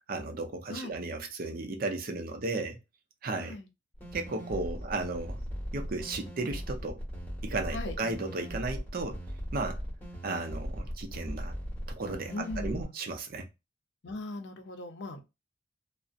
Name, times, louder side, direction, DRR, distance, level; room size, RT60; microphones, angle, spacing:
voice 1, 0.1-2.8 3.2-3.6 4.1-5.4 5.7-7.0 7.4-9.2 9.5-9.8 10.2-11.5 11.9-13.5, right 3 dB, 55° right, 0.5 m, -34 dB
voice 2, 3.4-3.7 7.7-7.9 12.3-12.9 14.0-15.2, left 2 dB, 70° left, 0.6 m, -39 dB
sound 1, 3.9-12.8, equal, 10° left, 1.3 m, -39 dB
2.6 x 2.1 x 2.4 m
head